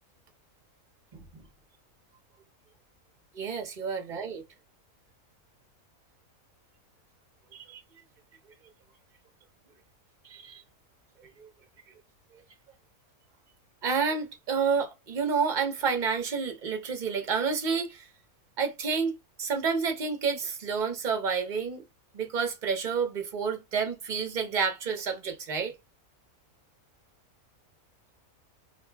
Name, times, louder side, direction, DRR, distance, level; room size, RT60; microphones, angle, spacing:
voice 1, 3.3-4.4 7.5-7.8 10.2-10.6 11.4-11.5 12.3-12.4 13.8-18.1 18.6-21.8 22.1-25.7, right 5 dB, 40° right, 0.9 m, -29 dB
2.8 x 2.6 x 3.4 m
omnidirectional pair, 1.5 m